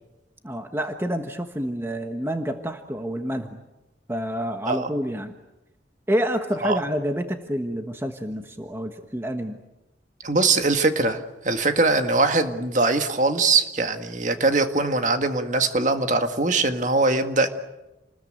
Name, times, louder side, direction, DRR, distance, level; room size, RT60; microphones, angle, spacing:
voice 1, 0.4-3.6 4.1-5.3 6.1-9.6, equal, 15° right, 6 dB, 1.3 m, -28 dB
voice 2, 10.2-17.5, right 3 dB, 45° right, 7 dB, 1.9 m, -22 dB
29.0 x 20.5 x 9.0 m, 1.0 s
head